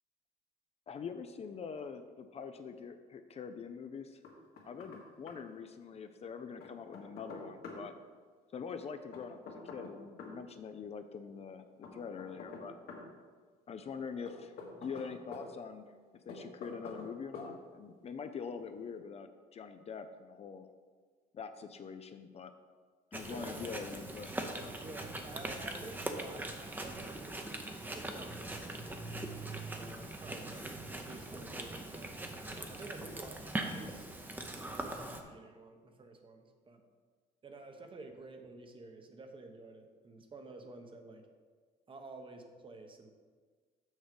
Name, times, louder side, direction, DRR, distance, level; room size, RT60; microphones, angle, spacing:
voice 1, 0.9-4.2 4.6-7.9 8.5-11.7 11.9-12.7 13.7-14.5 14.8-15.9 16.3-20.7 21.3-22.5 23.1-24.4, left 6 dB, 40° left, 8 dB, 0.5 m, -44 dB
Knock, 4.2-5.0 5.3-5.4 6.6-7.8 9.1-10.4 11.8-13.1 14.3-15.5 16.3-17.1 17.3-17.5, left 4 dB, 70° left, 1.9 m, -46 dB
Chewing mastication, 23.1-35.2, right 2 dB, 10° right, 0.8 m, -41 dB
voice 2, 23.3-23.8 24.8-29.1 29.7-32.1 32.7-34.1 34.6-36.8 37.4-41.2 41.9-43.1, right 3 dB, 30° right, 5 dB, 1.0 m, -51 dB
6.4 x 6.3 x 5.3 m, 1.5 s
cardioid pair, 110°, 17 cm